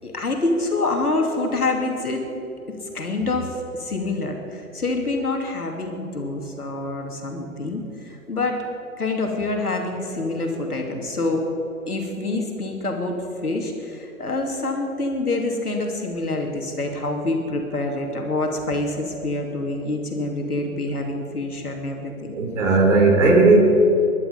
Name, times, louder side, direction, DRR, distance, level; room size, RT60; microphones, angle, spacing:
voice 1, 0.0-2.2 2.9-8.6 9.0-11.4 11.9-22.4, left 2 dB, 80° left, 2 dB, 2.8 m, -26 dB
voice 2, 22.3-23.6, right 3 dB, 55° right, 1 dB, 3.9 m, -16 dB
20.5 x 12.0 x 5.4 m, 3.0 s
figure-of-eight pair, 120°, 44 cm